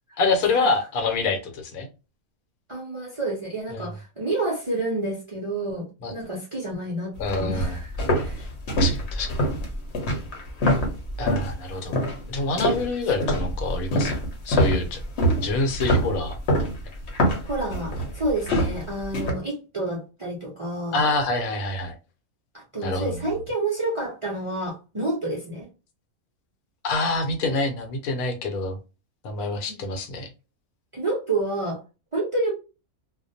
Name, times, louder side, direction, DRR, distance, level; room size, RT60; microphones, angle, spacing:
voice 1, 0.2-1.9 3.7-3.9 6.0-6.1 7.2-7.7 8.4-8.5 8.8-9.4 11.2-12.0 12.3-14.1 14.4-15.0 15.4-16.3 20.9-21.9 22.8-23.2 26.8-28.8 29.2-30.3, left 3 dB, 75° left, 5 dB, 1.1 m, -26 dB
voice 2, 2.7-8.5 17.4-21.1 22.5-25.7 29.7-29.8 30.9-31.8 32.1-32.5, right 2 dB, 50° right, -4 dB, 0.3 m, -29 dB
sound 1, 7.2-11.5 11.9-12.2 12.6-19.3, equal, 55° left, 0.9 m, -25 dB
2.4 x 2.1 x 2.6 m, 0.31 s
omnidirectional pair, 1.5 m